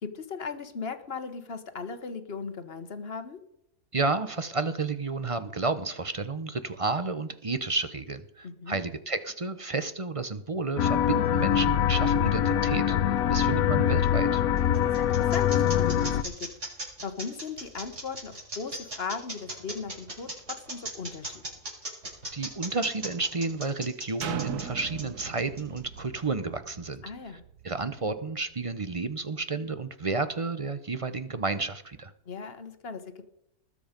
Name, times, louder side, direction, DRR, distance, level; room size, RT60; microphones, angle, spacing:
voice 1, 0.0-3.4 8.4-8.8 14.8-16.5 17.0-21.4 27.0-27.4 32.2-33.3, left 5 dB, 45° left, 10 dB, 1.4 m, -38 dB
voice 2, 3.9-14.4 22.3-27.0 27.6-32.1, right 3 dB, 35° right, 12 dB, 0.6 m, -31 dB
sound 1, 10.8-16.2, left 9 dB, 70° left, 1.1 m, -24 dB
sound 2, 14.3-26.2, right 1 dB, 50° right, 5.9 m, -38 dB
sound 3, 24.2-28.0 28.5-28.6, right 8 dB, 90° right, 1.5 m, -39 dB
20.0 x 7.8 x 5.2 m, 0.78 s
omnidirectional pair, 1.6 m